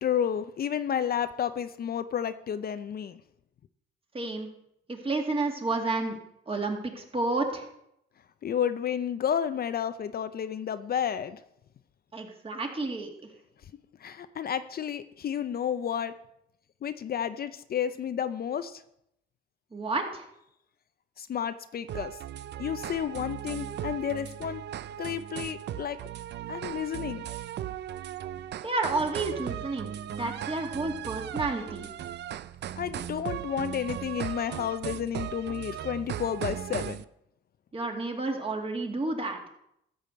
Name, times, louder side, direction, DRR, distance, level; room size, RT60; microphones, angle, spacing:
voice 1, 0.0-3.2 8.4-11.4 14.0-16.1 16.8-18.8 21.2-22.2 22.6-24.6 25.0-26.0 26.5-27.2 32.8-37.0, left 8 dB, 50° left, 11 dB, 0.6 m, -31 dB
voice 2, 4.1-4.5 4.9-6.2 6.5-7.7 12.1-13.1 19.7-20.3 28.6-31.9 37.7-39.5, right 3 dB, 30° right, 2 dB, 2.4 m, -31 dB
sound 1, 21.9-37.0, right 11 dB, 60° right, 0.5 m, -37 dB
13.5 x 5.0 x 7.7 m, 0.76 s
cardioid pair, 90°, 20 cm